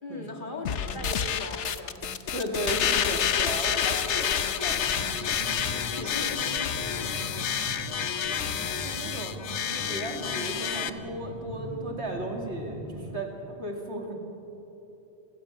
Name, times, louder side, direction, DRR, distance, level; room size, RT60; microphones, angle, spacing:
voice 1, 0.0-2.3 5.6-8.8, left 2 dB, 45° left, 2 dB, 2.4 m, -41 dB
sound 1, 0.7-10.9, left 8 dB, 90° left, 1.1 m, -29 dB
voice 2, 2.3-4.9 8.8-14.1, right 1 dB, 70° right, 2 dB, 2.9 m, -35 dB
sound 2, 4.7-13.2, right 1 dB, 30° right, 1.7 m, -41 dB
sound 3, 4.9-6.4, right 1 dB, 50° right, 5.2 m, -50 dB
29.0 x 16.0 x 7.3 m, 3.0 s
omnidirectional pair, 1.2 m